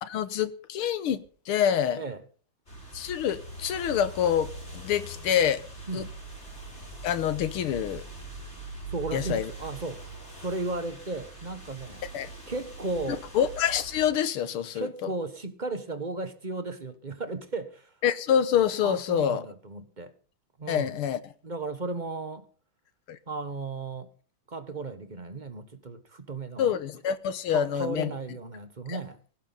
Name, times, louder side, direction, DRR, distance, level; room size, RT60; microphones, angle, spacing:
voice 1, 0.0-2.0 2.9-5.6 5.9-6.0 7.0-8.0 9.1-9.5 12.1-12.3 13.4-14.9 18.0-19.4 20.7-21.2 23.1-23.2 26.6-28.1 28.9-29.0, left 9 dB, 85° left, 2.0 m, -26 dB
sound 1, 2.7-14.1, right 2 dB, 30° left, 6.2 m, -42 dB
voice 2, 8.9-10.0 10.4-12.0 12.5-13.2 14.7-17.9 18.8-20.1 20.6-21.0 21.4-22.5 23.3-24.1 24.5-26.8 27.5-29.2, right 3 dB, 25° right, 1.2 m, -35 dB
17.0 x 16.5 x 4.1 m
omnidirectional pair, 2.3 m